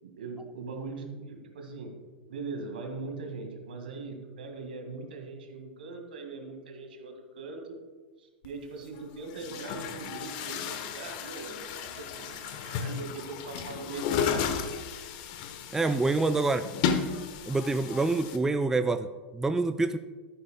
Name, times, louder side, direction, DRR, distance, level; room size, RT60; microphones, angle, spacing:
voice 1, 0.0-1.9 2.3-7.8 8.2-14.6, right 3 dB, 70° right, 4 dB, 1.9 m, -41 dB
Chatter / Gurgling / Tap, 8.4-8.5 9.3-18.4, left 7 dB, 50° left, 1.0 m, -34 dB
voice 2, 15.7-16.7 17.5-20.0, right 3 dB, 10° right, 10 dB, 0.4 m, -26 dB
12.5 x 10.0 x 2.2 m, 1.4 s
figure-of-eight pair, 95°, 5 cm